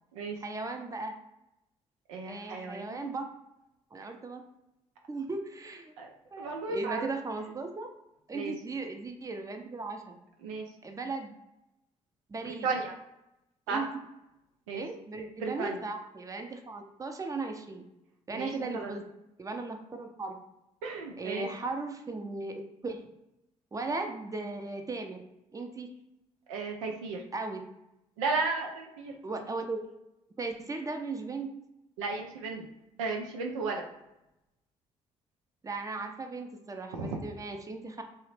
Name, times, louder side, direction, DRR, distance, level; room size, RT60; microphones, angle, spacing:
voice 1, 0.4-1.1 2.3-3.3 3.9-4.4 5.1-5.9 6.3-7.9 8.3-10.2 10.8-11.3 12.3-12.7 13.7-13.9 14.7-17.8 18.3-19.0 19.4-20.4 21.2-22.5 22.8-23.0 23.7-25.3 25.5-25.9 27.3-27.6 29.2-29.8 30.4-31.5 35.6-38.0, right 3 dB, 20° right, 4 dB, 0.5 m, -37 dB
voice 2, 2.1-3.1 6.0-6.1 6.4-7.1 8.3-8.5 10.4-10.7 12.5-12.9 13.7-13.8 14.7-14.8 15.4-15.8 18.3-18.9 20.8-21.5 26.5-27.2 28.2-29.2 32.0-32.7 33.0-33.9 36.9-37.2, right 4 dB, 90° right, 1 dB, 0.4 m, -34 dB
2.7 x 2.0 x 3.1 m, 0.89 s
hypercardioid pair, 45°, 16 cm